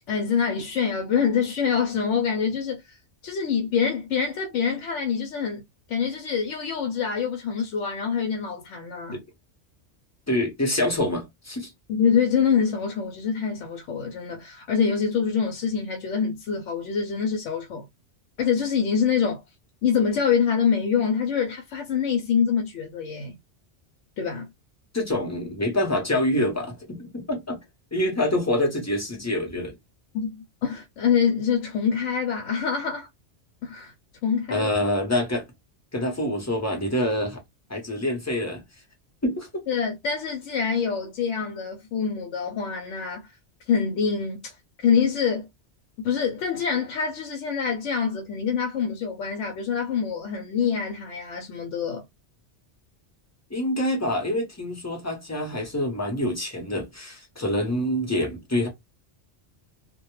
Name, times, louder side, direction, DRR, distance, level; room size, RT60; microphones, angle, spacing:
voice 1, 0.1-3.0 3.2-5.6 5.9-9.2 11.9-17.9 18.4-19.4 19.8-23.4 24.2-24.5 30.1-33.1 33.6-33.9 34.2-34.7 39.7-43.3 43.7-44.6 44.8-45.5 46.0-52.0, left 6 dB, 80° left, 0.9 m, -25 dB
voice 2, 10.3-11.7 24.9-27.6 27.9-29.7 34.5-35.4 35.9-37.4 37.7-38.6 39.2-39.5 53.5-58.7, left 1 dB, 15° left, 0.7 m, -26 dB
2.2 x 2.1 x 3.0 m
omnidirectional pair, 1.2 m